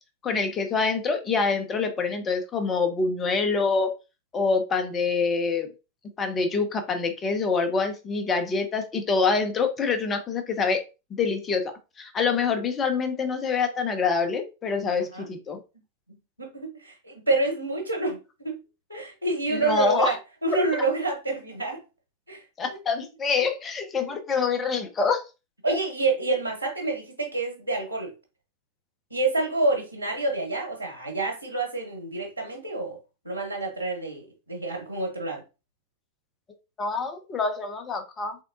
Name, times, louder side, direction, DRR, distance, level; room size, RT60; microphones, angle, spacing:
voice 1, 0.2-4.0 4.3-5.7 6.2-10.8 11.1-15.6 19.5-20.1 22.6-25.2 25.7-25.8 36.8-38.4, left 4 dB, 25° left, 0.7 m, -26 dB
voice 2, 16.4-18.5 18.9-21.8 22.3-22.4 25.6-28.1 29.1-33.0 33.2-35.4, right 2 dB, 90° left, 1.0 m, -28 dB
3.6 x 3.4 x 2.5 m
figure-of-eight pair, 90°, 0 cm